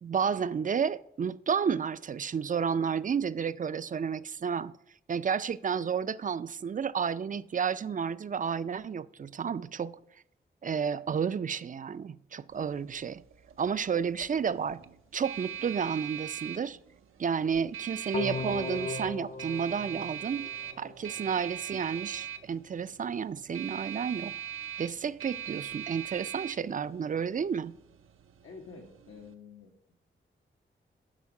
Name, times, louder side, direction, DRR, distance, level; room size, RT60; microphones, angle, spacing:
voice 1, 0.0-4.7 5.1-10.0 10.6-13.2 13.6-14.8 15.1-16.8 17.2-20.5 20.8-24.3 24.8-27.7, right 6 dB, 40° right, 0.4 m, -31 dB
sound 1, 12.5-29.3, right 10 dB, 85° right, 0.6 m, -42 dB
sound 2, 18.1-21.1, left 3 dB, 35° left, 0.6 m, -37 dB
voice 2, 28.4-29.7, left 4 dB, 85° left, 1.2 m, -50 dB
11.5 x 5.1 x 4.8 m
cardioid pair, 60°, 21 cm